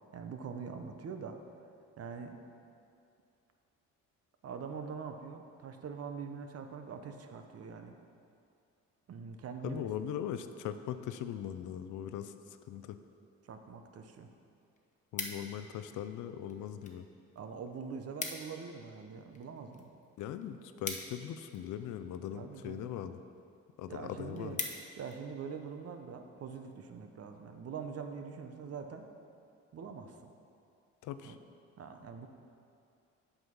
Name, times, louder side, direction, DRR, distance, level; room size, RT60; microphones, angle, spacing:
voice 1, 0.1-1.4 2.0-2.4 4.4-8.0 9.1-9.9 13.4-14.3 17.3-19.9 22.3-22.9 23.9-24.6 25.0-29.1 29.7-30.3 31.2-31.4 31.8-32.3, right 6 dB, 55° right, 6 dB, 0.8 m, -43 dB
voice 2, 9.6-12.3 12.7-13.0 15.1-17.0 20.2-23.2 23.8-24.6 31.0-31.4, left 10 dB, 80° left, 10 dB, 0.5 m, -40 dB
sound 1, 14.0-14.1 14.4-15.8 16.5-17.0 17.3-17.4 17.7-17.8 18.0-18.6 19.0-21.8 22.5-22.9 23.4-23.5 23.8-23.9 24.2-25.2 25.7-25.9, left 3 dB, 25° left, 0.9 m, -42 dB
8.0 x 6.3 x 5.4 m, 2.5 s
cardioid pair, 90°, 30 cm